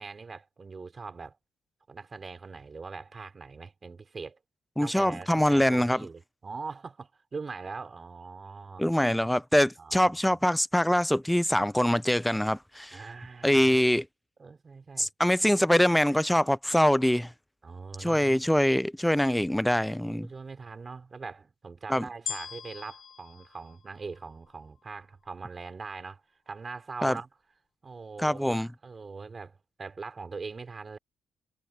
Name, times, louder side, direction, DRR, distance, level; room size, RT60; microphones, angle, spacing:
voice 1, 0.0-1.4 1.9-4.4 4.8-8.9 9.8-10.3 12.9-13.9 14.4-15.1 17.6-18.4 19.9-27.3 27.8-31.0, right 4 dB, 35° right, 5.5 m, -42 dB
voice 2, 4.8-6.0 8.8-13.0 13.4-14.0 15.0-17.3 18.0-20.3 21.9-22.1 27.0-27.2 28.2-28.7, equal, 5° left, 0.5 m, -24 dB
sound 1, 22.3-24.6 25.3-25.4, left 7 dB, 50° left, 0.9 m, -41 dB
cardioid pair, 90°, 0 cm